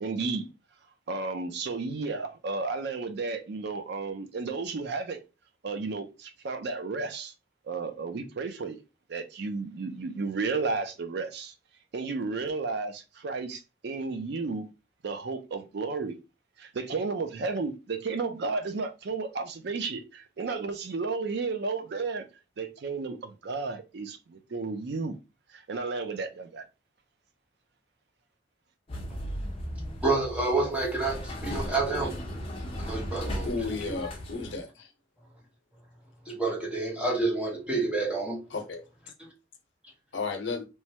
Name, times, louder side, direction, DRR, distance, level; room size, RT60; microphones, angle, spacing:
voice 1, 0.0-0.4 1.1-5.2 5.6-7.3 7.7-8.8 9.1-11.5 11.9-14.7 15.0-16.2 16.6-22.3 22.6-25.2 25.5-26.6, right 4 dB, 60° right, 0.4 m, -33 dB
sound 1, 28.9-34.5, equal, 30° left, 0.6 m, -36 dB
voice 2, 30.0-32.2 32.8-33.5 33.9-34.0 36.3-38.4, right 3 dB, 5° right, 0.8 m, -28 dB
voice 3, 33.4-34.9 38.5-38.8 40.1-40.6, left 4 dB, 70° left, 0.7 m, -33 dB
3.1 x 2.2 x 2.7 m
head